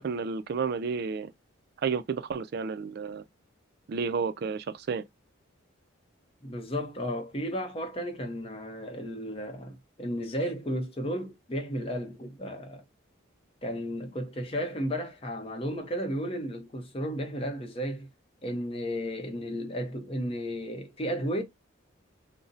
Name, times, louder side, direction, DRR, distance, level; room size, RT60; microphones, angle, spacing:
voice 1, 0.0-1.3 1.8-3.2 3.9-5.0, right 5 dB, 50° right, 0.3 m, -31 dB
voice 2, 6.4-12.8 13.6-18.1 18.4-21.4, equal, 30° left, 0.6 m, -33 dB
2.5 x 2.0 x 3.8 m
head